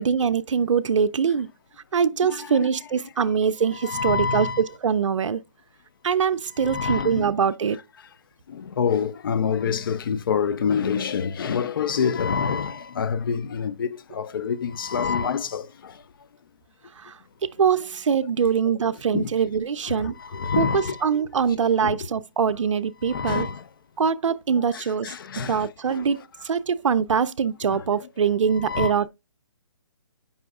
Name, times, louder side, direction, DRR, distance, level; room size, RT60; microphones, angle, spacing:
voice 1, 0.0-1.5 1.9-5.4 6.0-7.8 17.0-17.1 17.4-20.1 20.6-23.5 24.0-25.1 25.5-26.2 26.4-29.1, right 6 dB, 75° right, 0.4 m, -23 dB
voice 2, 2.2-2.7 3.7-4.6 6.6-7.3 8.6-15.6 19.1-19.3 19.9-21.0 21.8-22.0 23.1-23.6 24.7-25.6 27.7-27.8 28.6-28.9, left 6 dB, 45° left, 0.5 m, -26 dB
7.7 x 5.5 x 2.3 m
hypercardioid pair, 155°, 16 cm